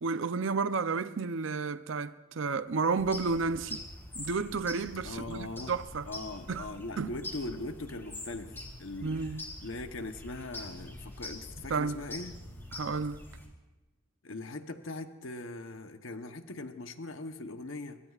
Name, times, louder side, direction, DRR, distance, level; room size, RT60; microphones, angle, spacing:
voice 1, 0.0-3.8 4.2-6.1 6.5-6.7 7.0-7.2 9.0-9.4 11.7-12.0 12.7-13.2, right 4 dB, 70° right, 0.6 m, -31 dB
sound 1, 3.0-13.5, left 1 dB, 10° left, 3.2 m, -45 dB
voice 2, 5.0-5.7 6.1-9.1 9.6-12.4 14.2-18.0, left 2 dB, 75° left, 1.0 m, -40 dB
25.0 x 23.0 x 2.4 m
head